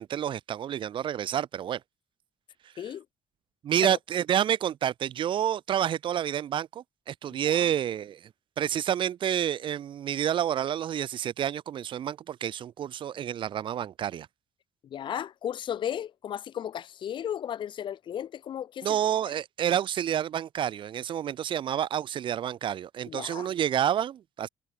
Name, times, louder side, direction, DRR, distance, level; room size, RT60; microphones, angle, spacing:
voice 1, 0.0-1.8 3.6-8.2 8.6-14.3 18.8-24.5, right 10 dB, 55° right, 0.5 m, -29 dB
voice 2, 7.4-7.7 14.8-18.9 23.1-23.5, left 10 dB, 55° left, 0.5 m, -35 dB
supercardioid pair, 70°, 10 cm